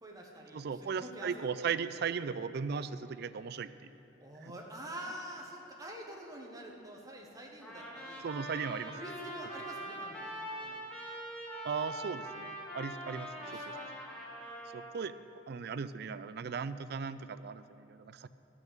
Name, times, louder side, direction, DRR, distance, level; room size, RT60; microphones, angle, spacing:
voice 1, 0.0-1.6 4.2-8.3 9.0-10.3 10.6-10.8 13.4-13.9, right 1 dB, 20° right, -1 dB, 1.3 m, -46 dB
voice 2, 0.5-3.9 4.4-4.5 8.2-9.0 11.6-13.3 13.7-13.8 14.7-15.1 15.5-18.3, right 6 dB, 55° right, 14 dB, 0.4 m, -37 dB
Trumpet, 7.6-15.1, right 1 dB, 5° left, 1.6 m, -43 dB
13.0 x 6.2 x 7.3 m, 2.9 s
head